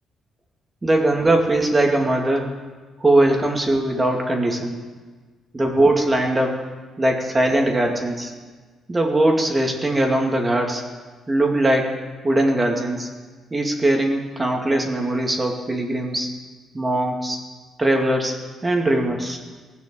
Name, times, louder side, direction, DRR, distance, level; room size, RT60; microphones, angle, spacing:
voice 1, 0.8-2.5 3.0-4.8 5.5-6.6 7.0-8.3 8.9-10.9 11.3-12.0 12.2-13.1 13.5-16.3 16.7-17.4 17.8-18.4 18.6-19.4, right 1 dB, 20° right, 1 dB, 2.5 m, -20 dB
19.5 x 6.5 x 8.5 m, 1.4 s
cardioid pair, 90°, 0 cm